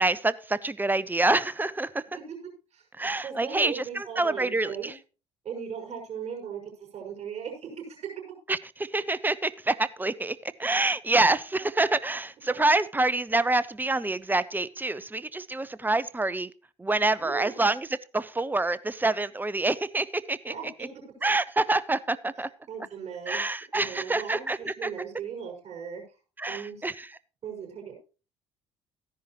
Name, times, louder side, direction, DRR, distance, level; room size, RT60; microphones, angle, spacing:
voice 1, 0.0-2.0 3.0-4.9 8.5-16.5 16.8-20.5 21.2-22.5 23.3-24.9 26.4-27.1, right 2 dB, 15° right, 18 dB, 0.7 m, -27 dB
voice 2, 2.7-4.9 5.4-8.1 17.1-17.7 20.5-20.9 21.2-21.3 22.7-23.4 23.7-26.0 26.5-26.9 27.4-27.9, right 7 dB, 45° right, -2 dB, 5.8 m, -38 dB
14.5 x 10.5 x 3.2 m, 0.34 s
figure-of-eight pair, 55°, 15 cm